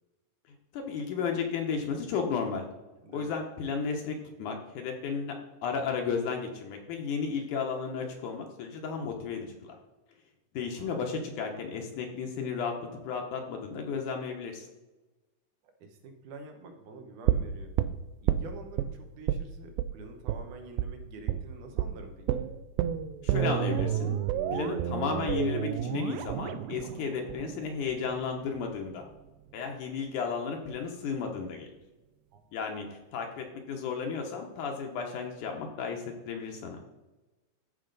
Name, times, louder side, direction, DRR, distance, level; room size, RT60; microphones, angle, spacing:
voice 1, 0.7-2.7 3.1-5.3 5.6-9.8 10.5-12.8 13.0-14.7 23.2-24.2 24.5-29.0 29.5-31.7 32.5-36.8, left 5 dB, 70° left, 2 dB, 2.2 m, -33 dB
voice 2, 3.0-3.3 10.7-11.1 15.8-17.7 18.2-22.5 32.3-32.4, right 3 dB, 70° right, 4 dB, 2.4 m, -47 dB
sound 1, 17.3-18.9 19.3-19.5 19.8-19.9 20.3-20.4 20.8-20.9 21.3-21.5 21.8-21.9 22.3-28.3 28.6-28.7, right 11 dB, 85° right, 2.2 m, -30 dB
14.0 x 5.0 x 3.9 m, 1.1 s
omnidirectional pair, 4.0 m